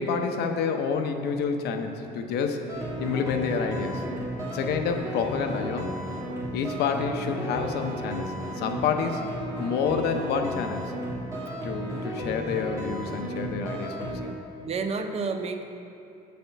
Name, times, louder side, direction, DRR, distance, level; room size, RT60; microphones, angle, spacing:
voice 1, 0.0-2.7 3.0-4.1 4.5-5.9 6.5-9.3 9.6-10.9 11.6-14.3, left 6 dB, 75° left, 6 dB, 0.7 m, -28 dB
sound 1, 2.7-14.3, right 1 dB, 20° right, 1.9 m, -34 dB
voice 2, 14.6-15.6, right 4 dB, 40° right, 6 dB, 0.6 m, -31 dB
8.0 x 4.2 x 6.8 m, 2.7 s
cardioid pair, 110°, 17 cm